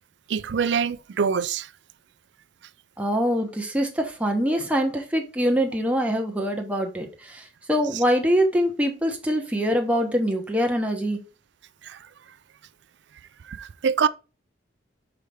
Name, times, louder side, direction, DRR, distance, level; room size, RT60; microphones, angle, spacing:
voice 1, 0.3-1.7 11.8-12.0 13.5-14.1, right 6 dB, 65° right, 0.4 m, -24 dB
voice 2, 3.0-11.2, equal, 5° right, 1.1 m, -24 dB
5.7 x 4.9 x 3.4 m
head